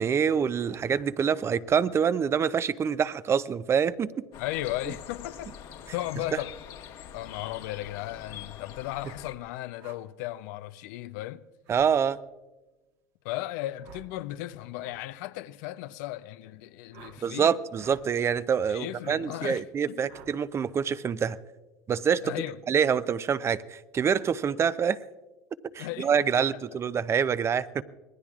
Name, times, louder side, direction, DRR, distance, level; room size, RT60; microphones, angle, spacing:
voice 1, 0.0-4.2 11.7-12.2 17.2-21.4 21.9-22.2 22.7-25.0 25.7-27.8, right 7 dB, 30° right, 0.5 m, -26 dB
sound 1, 4.3-9.3, left 9 dB, 60° left, 1.4 m, -44 dB
voice 2, 4.4-5.5 5.9-6.6 7.1-11.5 13.2-17.5 18.7-20.1 22.2-22.6 25.8-26.4, left 15 dB, 75° left, 0.6 m, -36 dB
sound 2, 9.8-10.0 11.6-11.9 13.8-14.1 14.8-15.0 16.9-17.2 17.7-18.1 19.0-19.2 20.1-20.4, right 7 dB, 70° right, 1.5 m, -50 dB
26.0 x 19.0 x 2.4 m
supercardioid pair, 110°, 10 cm